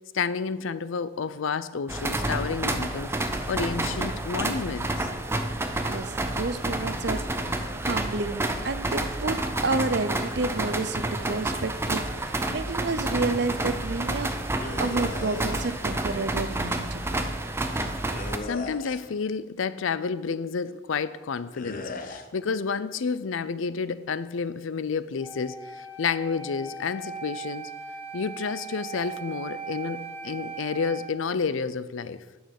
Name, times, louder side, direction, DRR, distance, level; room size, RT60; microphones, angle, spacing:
voice 1, 0.0-5.1 18.4-27.7 28.1-32.2, left 5 dB, 80° left, 0.5 m, -30 dB
sound 1, 1.9-18.4, right 1 dB, 10° right, 0.6 m, -29 dB
voice 2, 5.9-7.2 7.5-14.4 14.8-17.2, right 3 dB, 55° right, 0.6 m, -30 dB
sound 2, 14.6-15.7 18.1-19.2 21.5-22.3, left 2 dB, 45° left, 0.8 m, -37 dB
Wind instrument woodwind instrument, 25.2-31.1, right 5 dB, 30° right, 1.5 m, -39 dB
9.5 x 6.4 x 6.5 m
head